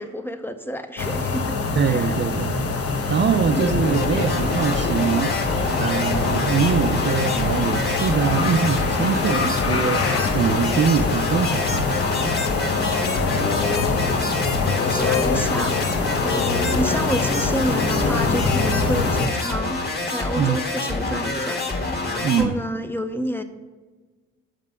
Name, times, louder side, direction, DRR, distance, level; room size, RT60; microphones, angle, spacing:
voice 1, 0.0-1.6 1.8-2.2 13.2-14.1 14.8-23.4, equal, 5° left, 0.6 m, -30 dB
sound 1, 1.0-19.3, left 4 dB, 50° left, 1.0 m, -24 dB
voice 2, 1.8-2.6 3.1-5.4 5.8-10.1 10.3-11.9 20.4-20.6 22.2-22.6, right 7 dB, 40° right, 0.5 m, -23 dB
sound 2, 3.4-22.5, left 2 dB, 35° left, 1.6 m, -27 dB
7.5 x 5.4 x 5.4 m
cardioid pair, 90°, 30 cm